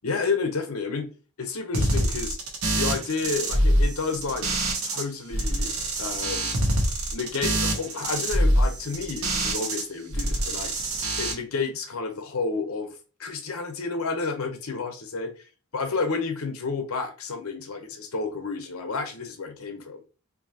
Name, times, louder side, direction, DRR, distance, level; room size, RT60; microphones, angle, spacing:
voice 1, 0.0-1.1 1.4-2.4 2.7-4.5 4.8-6.7 7.1-10.7 11.2-15.3 15.7-20.0, left 4 dB, 75° left, 0.9 m, -30 dB
sound 1, 1.7-5.0 5.3-9.8 10.1-11.3, right 1 dB, 75° right, 1.2 m, -25 dB
4.7 x 2.8 x 2.8 m
head